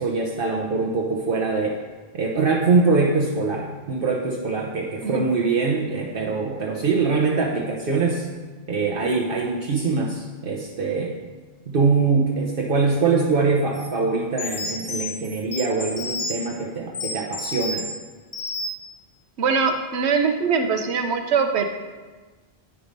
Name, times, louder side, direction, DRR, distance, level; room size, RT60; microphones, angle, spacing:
voice 1, 0.0-1.8 2.1-8.3 8.7-11.2 11.7-17.8, right 4 dB, 60° right, -1 dB, 1.0 m, -23 dB
sound 1, 13.7-13.9 14.4-16.5 16.9-17.9 18.3-18.9, left 2 dB, 45° left, 1.3 m, -31 dB
voice 2, 19.4-21.7, right 5 dB, 85° right, 6 dB, 1.1 m, -22 dB
9.9 x 4.7 x 5.2 m, 1.3 s
omnidirectional pair, 1.1 m